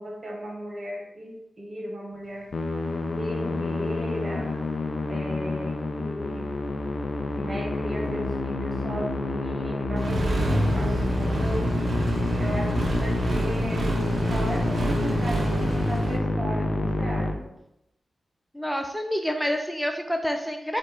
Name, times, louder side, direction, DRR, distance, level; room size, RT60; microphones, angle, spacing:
voice 1, 0.0-2.5 3.1-4.7 5.1-6.6 7.3-11.8 12.4-13.9 14.2-17.5, equal, 50° right, 0 dB, 1.3 m, -36 dB
Musical instrument, 2.5-17.3, left 2 dB, 60° left, 0.5 m, -28 dB
Accelerating revving vroom, 10.0-16.2, right 2 dB, 65° right, 0.7 m, -28 dB
voice 2, 18.5-20.8, equal, 5° left, 4 dB, 0.4 m, -28 dB
4.5 x 2.5 x 4.6 m, 0.82 s
cardioid pair, 50°, 0 cm